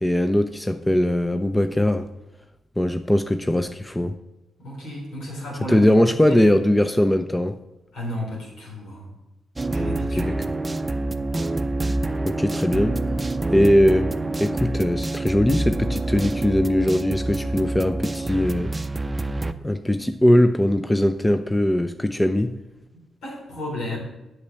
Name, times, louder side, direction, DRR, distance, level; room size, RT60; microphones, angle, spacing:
voice 1, 0.0-2.1 2.8-4.1 5.7-7.6 10.2-10.5 12.2-13.0 13.5-14.1 14.4-18.7 19.6-22.5, left 1 dB, 15° left, 9 dB, 0.7 m, -20 dB
voice 2, 4.6-6.5 7.9-9.1 9.7-10.3 22.9-24.0, left 1 dB, 70° left, -2 dB, 3.7 m, -33 dB
sound 1, 9.6-19.5, right 2 dB, 25° right, 0.7 m, -26 dB
8.3 x 6.3 x 6.9 m, 0.99 s
hypercardioid pair, 40°, 0 cm